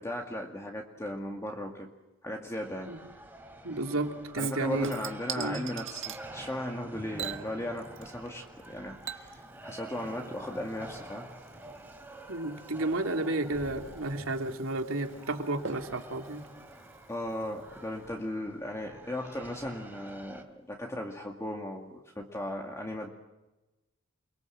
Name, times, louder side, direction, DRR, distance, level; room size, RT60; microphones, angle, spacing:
voice 1, 0.0-1.9 2.2-2.9 4.4-11.3 17.1-23.1, left 1 dB, 15° left, 1 dB, 2.2 m, -37 dB
sound 1, 2.6-20.4, right 1 dB, 10° right, 3.2 m, -48 dB
voice 2, 3.6-4.9 5.4-5.7 12.3-16.5, right 2 dB, 85° right, 4 dB, 2.9 m, -32 dB
Chink clink / Liquid, 4.4-6.2 7.2-8.3 8.6-17.6 18.0-18.1, right 8 dB, 65° right, 1.9 m, -44 dB
29.0 x 22.0 x 7.9 m, 1.0 s
head